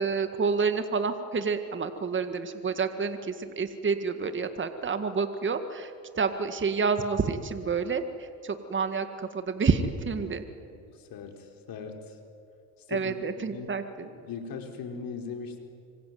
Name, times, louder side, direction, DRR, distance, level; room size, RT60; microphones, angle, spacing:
voice 1, 0.0-8.0 8.4-10.4 12.9-14.1, right 5 dB, 30° right, 8 dB, 2.0 m, -29 dB
voice 2, 10.7-12.2 12.9-13.2 13.5-13.7 14.0-15.6, left 6 dB, 60° left, 4 dB, 4.6 m, -39 dB
25.5 x 24.5 x 9.5 m, 2.4 s
cardioid pair, 95°, 38 cm